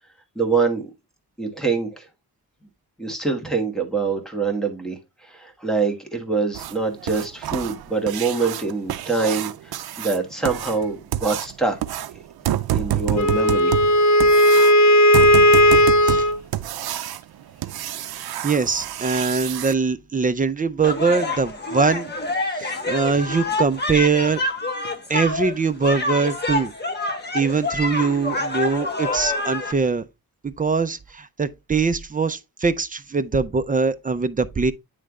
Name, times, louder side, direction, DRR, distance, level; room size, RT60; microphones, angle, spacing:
voice 1, 0.3-0.9 1.4-2.1 3.0-11.8 12.7-13.7, right 4 dB, ahead, 1.3 m, -25 dB
sound 1, 6.5-19.7 22.1-22.2 22.6-22.7 23.2-23.3 23.7-23.8 24.3-24.5 24.8-24.9 25.4-25.5, right 12 dB, 70° right, 0.5 m, -29 dB
Wind instrument woodwind instrument, 13.2-16.4, equal, 45° left, 0.6 m, -15 dB
voice 2, 18.4-22.1 22.5-24.4 25.1-26.7 27.3-30.1 30.4-34.7, right 4 dB, 25° right, 0.4 m, -22 dB
sound 2, 20.8-29.7, left 2 dB, 25° left, 1.1 m, -27 dB
9.1 x 3.3 x 3.5 m
wide cardioid pair, 145°, 38 cm